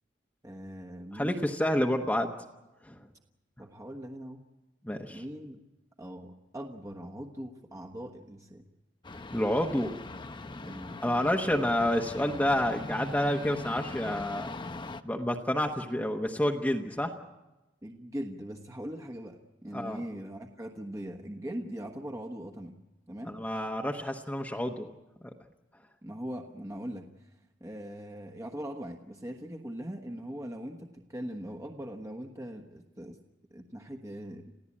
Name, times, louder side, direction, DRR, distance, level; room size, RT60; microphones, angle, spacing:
voice 1, 0.4-1.6 3.6-4.4 5.1-5.6 6.0-8.6 10.6-11.0 17.8-22.7 23.1-23.6 26.0-33.2 33.5-34.5, equal, 20° right, 3 dB, 1.3 m, -41 dB
voice 2, 1.1-2.3 2.9-3.0 4.8-5.2 9.3-10.0 11.0-14.5 15.0-17.1 19.7-20.0 23.3-24.9, left 1 dB, 10° left, 2 dB, 1.1 m, -29 dB
sound 1, 9.0-15.0, left 2 dB, 25° left, 0.8 m, -41 dB
28.0 x 15.5 x 8.6 m, 1.0 s
head